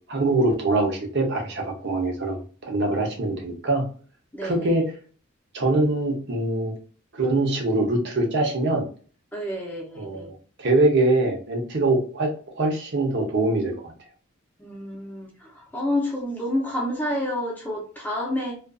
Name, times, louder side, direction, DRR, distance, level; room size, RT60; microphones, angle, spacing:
voice 1, 0.1-3.8 4.4-4.8 5.5-6.7 7.1-8.8 10.0-10.2 10.6-12.3 12.6-13.9, right 2 dB, 50° right, 1 dB, 0.7 m, -23 dB
voice 2, 4.3-4.8 9.3-10.3 14.6-18.6, left 1 dB, 10° left, -2 dB, 0.6 m, -29 dB
2.4 x 2.4 x 2.3 m, 0.41 s
head